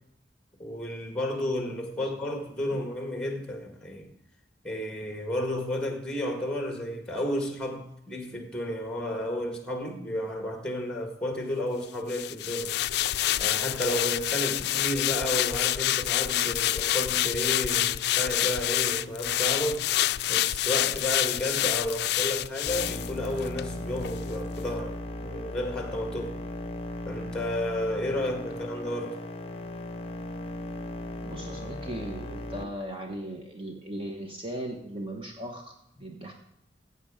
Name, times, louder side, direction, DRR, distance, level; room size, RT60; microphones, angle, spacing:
voice 1, 0.6-4.1 4.6-12.7 13.4-19.8 20.3-26.4 27.1-29.2, left 1 dB, 5° left, 1.8 m, -32 dB
sound 1, 12.1-23.7 24.0-24.2, left 14 dB, 60° left, 0.3 m, -27 dB
sound 2, 22.7-32.6, left 1 dB, 35° left, 0.8 m, -37 dB
voice 2, 31.2-35.7 36.0-36.3, right 1 dB, 30° right, 1.0 m, -37 dB
14.5 x 8.2 x 5.0 m
head